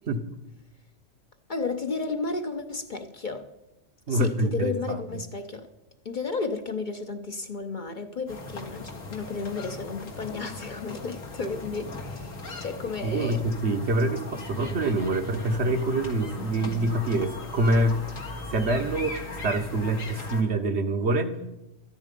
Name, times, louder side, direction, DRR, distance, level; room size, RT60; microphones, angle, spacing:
voice 1, 1.5-3.5 4.1-5.7 6.0-13.4, left 4 dB, 45° left, 0.8 m, -33 dB
voice 2, 4.1-5.0 12.5-12.6 13.0-18.0 18.5-19.2 19.4-21.4, right 2 dB, 60° right, 1.2 m, -25 dB
sound 1, 8.3-20.4, left 3 dB, 85° left, 2.2 m, -38 dB
13.5 x 9.9 x 5.2 m
omnidirectional pair, 1.3 m